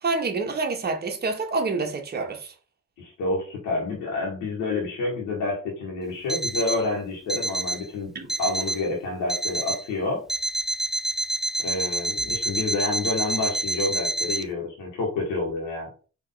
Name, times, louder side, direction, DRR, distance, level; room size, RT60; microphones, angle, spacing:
voice 1, 0.0-2.5 8.1-8.3, right 3 dB, 35° right, 1.2 m, -27 dB
voice 2, 3.0-8.1 8.4-10.2 11.6-15.9, left 3 dB, 85° left, 1.8 m, -28 dB
Alarm, 6.3-6.9 7.3-7.9 8.3-8.9 9.3-9.9 10.3-14.4, right 2 dB, ahead, 0.4 m, -28 dB
4.5 x 3.0 x 3.9 m
cardioid pair, 90°, 30 cm